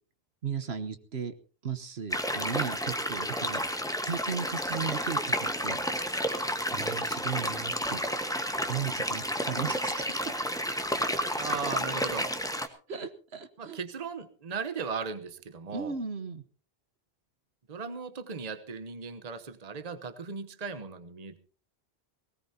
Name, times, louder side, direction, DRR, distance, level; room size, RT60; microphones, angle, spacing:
voice 1, 0.4-1.3 1.6-3.6 4.0-5.8 6.7-8.0 8.7-10.2 12.9-13.8 15.7-16.4, right 6 dB, 70° right, 8 dB, 1.4 m, -36 dB
sound 1, 2.1-12.7, equal, 5° left, 1.3 m, -31 dB
voice 2, 11.4-12.3 13.6-16.0 17.7-21.4, right 5 dB, 40° right, 11 dB, 1.1 m, -37 dB
19.5 x 18.0 x 2.8 m, 0.39 s
omnidirectional pair, 1.1 m